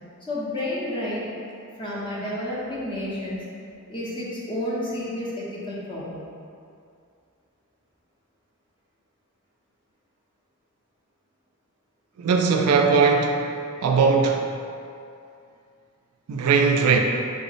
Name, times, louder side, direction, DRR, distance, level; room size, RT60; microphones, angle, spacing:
voice 1, 0.2-1.4 1.8-3.4 3.9-6.3, left 1 dB, 20° left, -7 dB, 0.6 m, -30 dB
voice 2, 12.2-13.4 13.8-14.5 16.3-17.0, right 5 dB, 80° right, 2 dB, 0.3 m, -19 dB
3.5 x 2.1 x 3.9 m, 2.5 s
head